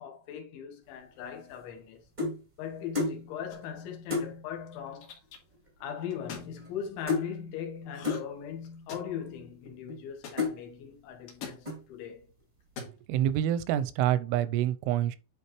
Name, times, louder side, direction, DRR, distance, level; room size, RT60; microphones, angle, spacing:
voice 1, 0.0-2.0 2.6-5.2 5.8-12.3, left 8 dB, 75° left, 3.6 m, -39 dB
sound 1, 1.2-2.4 2.9-3.2 3.6-3.7 4.1-4.3 5.2-5.3 5.5-5.8 6.1-6.8 7.1-7.3 8.0-8.3 9.0-9.1 9.6-10.0 10.4-10.6 11.1-11.3 11.6-12.0, left 4 dB, 70° right, 0.4 m, -32 dB
sound 2, 3.5-3.9 4.7-5.4 6.1-6.5 7.9-8.4 8.6-9.3 10.2-10.4 11.3-11.6 12.6-13.0, left 6 dB, 60° left, 2.8 m, -43 dB
voice 2, 12.8-15.2, right 11 dB, 85° right, 3.1 m, -27 dB
9.7 x 4.7 x 3.1 m
omnidirectional pair, 5.6 m